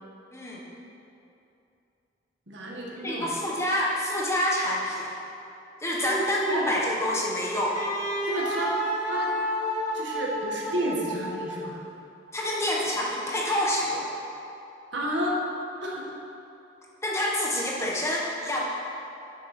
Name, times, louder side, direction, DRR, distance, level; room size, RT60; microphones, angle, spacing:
voice 1, 0.3-0.7 3.0-5.1 5.8-7.8 12.3-14.1 17.0-18.6, left 1 dB, 15° left, -4 dB, 1.3 m, -27 dB
voice 2, 2.5-3.3 6.0-6.7 8.2-8.7 9.1-9.3 9.9-11.8 14.9-15.4 15.8-16.1, right 1 dB, 85° right, -3 dB, 1.7 m, -31 dB
Wind instrument woodwind instrument, 7.7-11.8, equal, 45° left, 2.3 m, -30 dB
8.9 x 6.5 x 6.1 m, 2.8 s
head